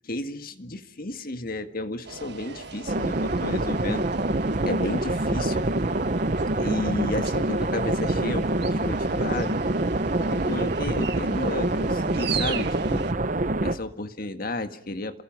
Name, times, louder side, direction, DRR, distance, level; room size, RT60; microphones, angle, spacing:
voice 1, 0.0-4.1 4.7-5.7 6.6-9.6 10.2-13.1 13.6-15.2, left 2 dB, 45° left, 9 dB, 1.8 m, -32 dB
sound 1, 2.0-13.1, right 7 dB, 55° right, 1.7 m, -39 dB
sound 2, 2.9-13.8, right 2 dB, 40° right, 1.0 m, -26 dB
28.5 x 22.0 x 6.1 m, 0.62 s
head